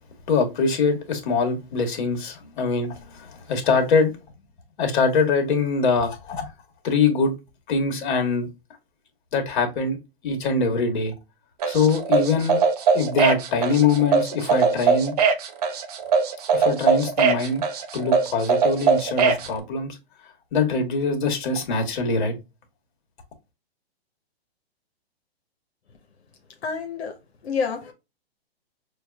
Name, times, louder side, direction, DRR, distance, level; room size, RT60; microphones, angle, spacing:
voice 1, 0.3-4.1 4.8-6.4 6.8-7.3 7.7-8.5 9.3-10.0 10.2-11.1 11.7-12.6 12.9-15.1 16.5-17.6 17.9-20.0 20.5-22.3, left 4 dB, 50° left, 1.5 m, -23 dB
sound 1, 11.6-19.5, right 5 dB, 40° right, 0.7 m, -20 dB
voice 2, 26.6-27.2 27.4-27.9, left 5 dB, 80° left, 0.9 m, -28 dB
6.2 x 2.4 x 2.3 m
hypercardioid pair, 155°, 32 cm